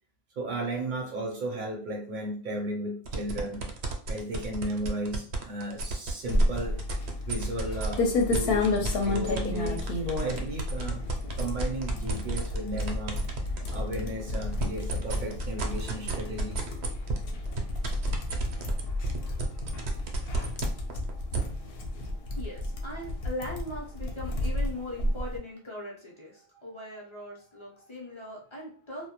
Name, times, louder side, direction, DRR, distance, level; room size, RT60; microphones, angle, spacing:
voice 1, 0.4-3.7 4.1-6.8 7.3-11.1 11.4-13.2 13.7-16.6, right 1 dB, 60° right, 2 dB, 0.6 m, -35 dB
sound 1, 3.1-7.9 8.3-13.8 14.2-21.4, right 3 dB, 85° right, 0.8 m, -33 dB
sound 2, 6.2-25.4, left 2 dB, 70° left, 0.7 m, -31 dB
voice 2, 22.3-29.1, left 1 dB, 35° left, -3 dB, 0.5 m, -40 dB
2.1 x 2.1 x 2.8 m, 0.44 s
omnidirectional pair, 1.1 m